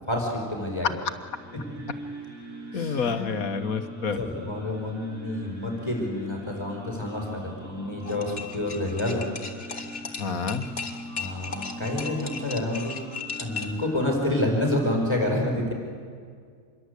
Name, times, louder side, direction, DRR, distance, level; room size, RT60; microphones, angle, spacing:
voice 1, 0.1-0.9 2.7-3.3 4.1-9.3 11.2-12.9 13.4-15.7, left 1 dB, 20° left, 0 dB, 4.9 m, -28 dB
sound 1, 0.9-15.1, right 1 dB, 85° right, 4.2 m, -43 dB
voice 2, 2.7-4.2 10.2-10.7, left 5 dB, 85° left, 9 dB, 1.7 m, -28 dB
sound 2, 8.0-13.8, left 5 dB, 45° left, 2.3 m, -36 dB
27.0 x 22.0 x 8.3 m, 2.1 s
omnidirectional pair, 1.4 m